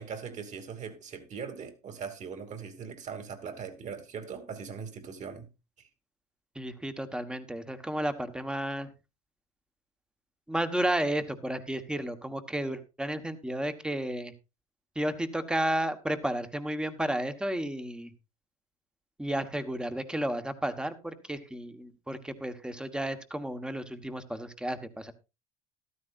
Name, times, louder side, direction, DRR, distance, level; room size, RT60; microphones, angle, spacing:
voice 1, 0.0-5.5 5.8-5.9, right 6 dB, 40° right, 2.8 m, -40 dB
voice 2, 6.5-8.9 10.5-14.3 14.9-18.1 19.2-25.1, right 1 dB, 5° right, 1.4 m, -32 dB
14.0 x 12.5 x 2.6 m
supercardioid pair, 100°, 18 cm